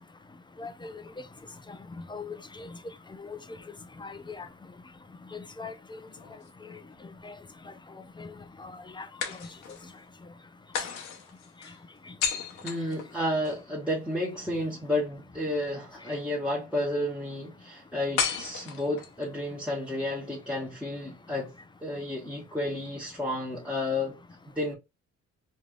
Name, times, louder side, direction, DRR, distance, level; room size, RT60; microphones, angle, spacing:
voice 1, 0.6-1.0 2.1-2.7 3.2-3.4 4.0-4.5 5.3-6.0 7.2-7.4 8.2-8.3 8.6-8.7 9.0-9.1, left 4 dB, 15° left, 0.4 m, -40 dB
sound 1, 6.1-7.2 9.2-10.0 10.7-13.6 18.2-19.3, left 7 dB, 85° left, 0.9 m, -34 dB
voice 2, 12.6-21.5 21.8-24.2 24.5-24.8, left 1 dB, 5° right, 1.1 m, -31 dB
3.2 x 2.6 x 2.3 m
cardioid pair, 90°, 30 cm